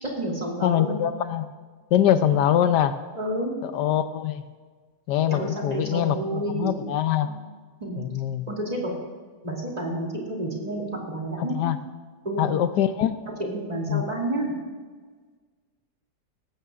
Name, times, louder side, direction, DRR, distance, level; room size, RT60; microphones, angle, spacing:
voice 1, 0.0-1.0 2.0-2.2 3.1-3.5 5.3-6.7 7.2-7.4 7.8-8.0 8.5-8.9 9.4-11.6 12.2-12.5 13.4-14.5, right 1 dB, 25° right, -2 dB, 3.0 m, -30 dB
voice 2, 0.6-1.5 1.9-2.9 3.6-4.4 5.1-7.3 8.0-8.5 11.5-11.8 12.4-13.2 13.9-14.0, left 10 dB, 80° left, 11 dB, 1.2 m, -23 dB
18.5 x 15.0 x 2.5 m, 1.5 s
omnidirectional pair, 1.8 m